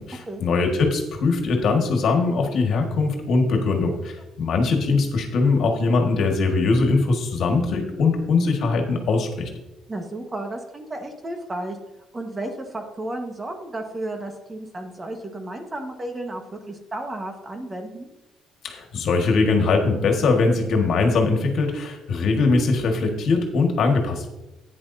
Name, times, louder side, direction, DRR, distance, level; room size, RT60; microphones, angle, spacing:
voice 1, 0.0-9.5 18.6-24.3, left 3 dB, 65° left, 3 dB, 1.7 m, -21 dB
voice 2, 9.9-11.8 12.1-18.1, right 1 dB, 25° right, 4 dB, 1.4 m, -33 dB
11.0 x 9.6 x 2.7 m, 1.0 s
cardioid pair, 100°, 0 cm